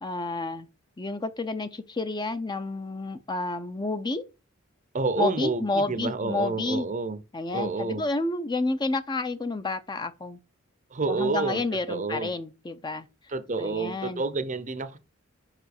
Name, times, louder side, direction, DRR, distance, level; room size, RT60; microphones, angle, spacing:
voice 1, 0.0-0.7 1.0-4.2 5.2-6.9 7.3-10.4 11.1-13.1 13.6-14.2, left 2 dB, 20° left, 0.5 m, -30 dB
voice 2, 4.9-7.2 7.5-8.0 10.9-11.6 11.9-12.3 13.3-15.0, right 3 dB, 40° right, 0.7 m, -29 dB
5.6 x 4.9 x 6.5 m
head